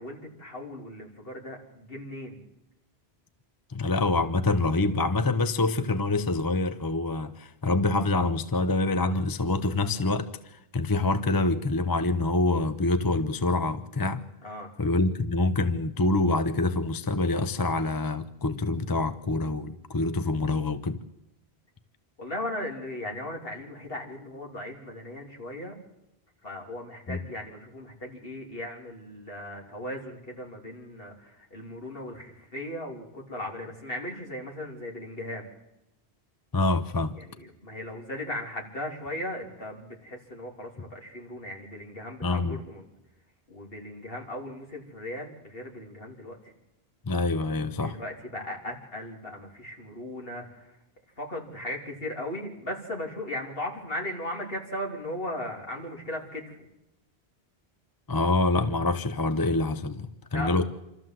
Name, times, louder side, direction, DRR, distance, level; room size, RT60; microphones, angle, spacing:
voice 1, 0.0-2.4 14.4-14.7 22.2-25.7 26.4-35.5 37.2-42.9 43.5-46.5 47.8-50.8 51.2-56.6 60.3-60.6, left 1 dB, 60° left, 3.6 m, -37 dB
voice 2, 3.7-14.2 14.8-21.0 27.1-27.2 36.5-37.2 42.2-42.6 47.0-48.0 58.1-60.6, left 2 dB, 25° left, 0.7 m, -26 dB
26.5 x 13.5 x 7.7 m
omnidirectional pair, 1.1 m